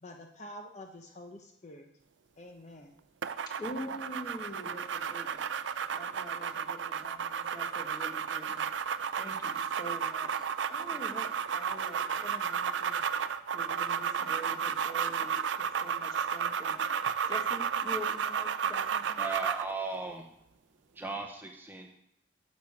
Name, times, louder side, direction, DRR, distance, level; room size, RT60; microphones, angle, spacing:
voice 1, 0.0-1.9 2.4-2.9, left 1 dB, 40° left, 3 dB, 0.9 m, -47 dB
sound 1, 3.2-19.7, right 7 dB, 85° right, 0.5 m, -33 dB
voice 2, 3.6-5.5 5.9-16.9 17.3-19.2, equal, 20° left, 1 dB, 1.6 m, -45 dB
voice 3, 19.2-20.3 20.9-21.9, right 3 dB, 10° right, 2 dB, 0.8 m, -37 dB
9.9 x 6.4 x 7.1 m, 0.79 s
head